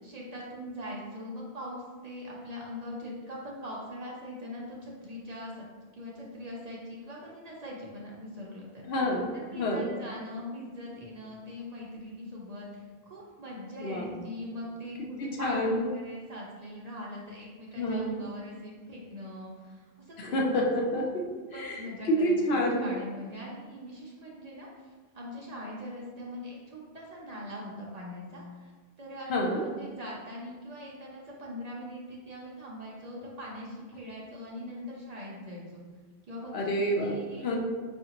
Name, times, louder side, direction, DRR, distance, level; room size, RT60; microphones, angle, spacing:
voice 1, 0.0-5.6 5.9-8.9 9.3-20.6 21.5-24.7 25.1-28.7 29.0-35.8 36.3-37.6, left 1 dB, 50° right, -3 dB, 0.6 m, -41 dB
voice 2, 8.8-9.2 9.5-9.8 13.8-14.2 15.2-15.8 17.8-18.2 20.2-21.2 21.5-22.8 29.3-29.6 36.5-37.2 37.4-37.6, equal, 75° left, -1 dB, 0.9 m, -28 dB
4.7 x 2.5 x 2.8 m, 1.4 s
omnidirectional pair, 1.1 m